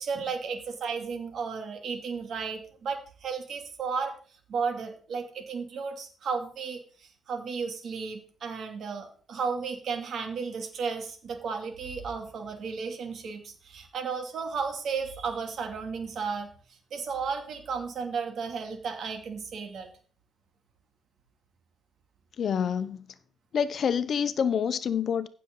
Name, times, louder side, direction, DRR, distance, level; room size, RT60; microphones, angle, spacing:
voice 1, 0.0-4.1 4.5-19.9, right 5 dB, 65° right, 2.7 m, -34 dB
voice 2, 22.4-23.1 23.5-25.3, left 7 dB, 55° left, 0.8 m, -27 dB
15.5 x 6.7 x 4.0 m
cardioid pair, 90°, 0 cm